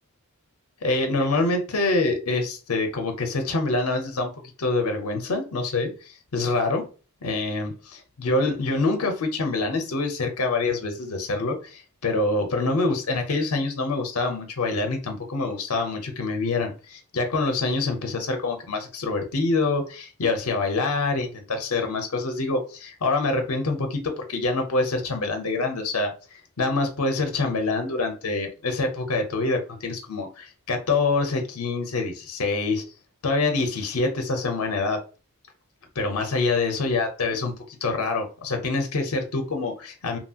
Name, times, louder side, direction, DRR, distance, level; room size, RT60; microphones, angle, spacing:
voice 1, 0.8-4.3 4.6-6.9 7.2-26.1 26.6-32.8 33.2-35.0 36.0-40.2, left 3 dB, 75° left, 0.7 m, -26 dB
2.9 x 2.8 x 2.3 m
head